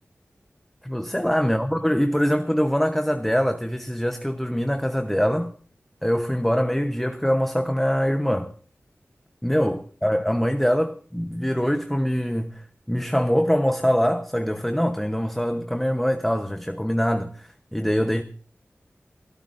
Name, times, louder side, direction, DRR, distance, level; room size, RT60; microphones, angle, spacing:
voice 1, 0.8-5.5 6.0-8.5 9.4-18.2, equal, 5° left, 0.9 m, -23 dB
28.5 x 13.5 x 2.6 m
wide cardioid pair, 80°, 5 cm